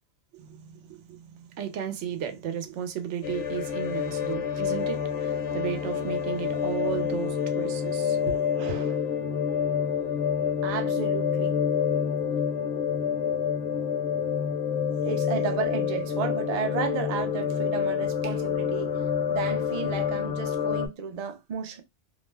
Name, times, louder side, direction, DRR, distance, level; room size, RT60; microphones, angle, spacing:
voice 1, 0.3-8.4 8.7-8.9, right 9 dB, 80° right, 0.9 m, -34 dB
sound 1, 3.2-20.9, left 7 dB, 70° left, 0.8 m, -28 dB
voice 2, 8.6-9.0 9.5-9.6 10.6-11.7 15.0-21.8, right 6 dB, 55° right, 0.4 m, -33 dB
2.5 x 2.1 x 3.2 m
omnidirectional pair, 1.2 m